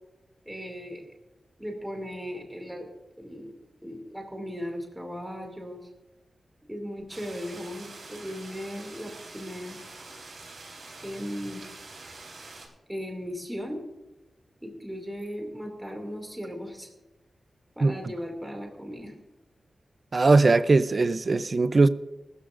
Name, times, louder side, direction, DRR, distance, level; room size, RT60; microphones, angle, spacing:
voice 1, 0.5-1.0 1.6-2.9 3.2-3.5 3.8-5.9 6.7-9.8 11.0-11.6 12.9-13.8 14.6-16.9 17.8-19.1, equal, 5° right, 2.4 m, -37 dB
sound 1, 7.1-12.7, right 3 dB, 65° right, 4.2 m, -45 dB
voice 2, 20.1-21.9, right 3 dB, 40° right, 0.5 m, -20 dB
20.5 x 13.5 x 2.5 m
wide cardioid pair, 140°, 0 cm